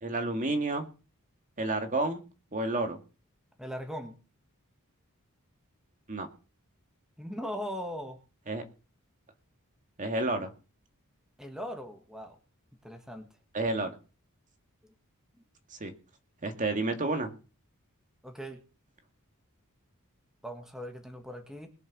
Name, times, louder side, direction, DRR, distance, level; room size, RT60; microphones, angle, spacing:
voice 1, 0.0-0.9 1.6-2.2 2.5-3.0 6.1-6.3 8.5-8.6 10.0-10.5 13.5-13.9 15.8-15.9 16.4-17.3, right 2 dB, 35° right, 6 dB, 2.1 m, -30 dB
voice 2, 3.6-4.2 7.2-8.2 11.4-12.4 12.8-13.3 18.2-18.6 20.4-21.7, equal, 5° right, 4 dB, 1.7 m, -39 dB
20.5 x 7.2 x 6.2 m, 0.34 s
head